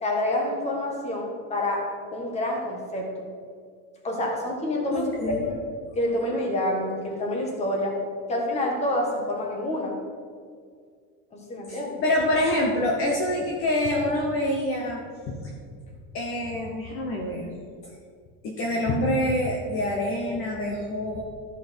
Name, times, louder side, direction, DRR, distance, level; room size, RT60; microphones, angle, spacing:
voice 1, 0.0-3.3 4.0-5.6 5.9-8.0 8.3-9.9 11.3-12.0, left 1 dB, 20° left, 0 dB, 1.5 m, -28 dB
voice 2, 4.9-5.5 11.7-15.0 15.3-15.4 16.1-17.5 18.4-21.2, left 1 dB, 40° left, -1 dB, 1.1 m, -26 dB
13.0 x 5.9 x 4.5 m, 2.1 s
cardioid pair, 175°, 34 cm